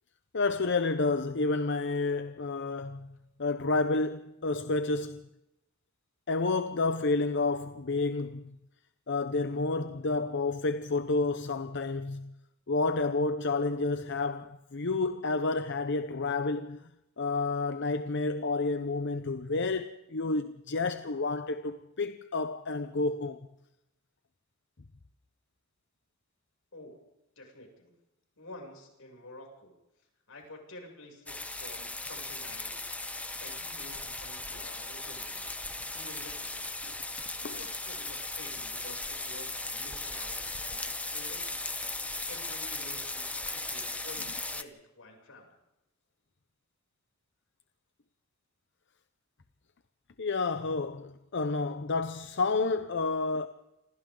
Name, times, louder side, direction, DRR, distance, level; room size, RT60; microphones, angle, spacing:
voice 1, 0.3-3.1 3.4-5.3 6.3-8.6 9.1-12.3 12.7-16.8 17.2-23.4 36.8-36.9 37.4-37.6 50.2-53.5, left 3 dB, 60° left, 0.8 m, -30 dB
voice 2, 27.4-27.9 28.4-29.7 30.3-32.9 33.3-36.7 37.4-41.4 42.3-45.5, left 2 dB, 85° left, 7.1 m, -50 dB
sound 1, 31.3-44.6, left 2 dB, 5° left, 0.9 m, -37 dB
28.0 x 26.5 x 3.9 m
head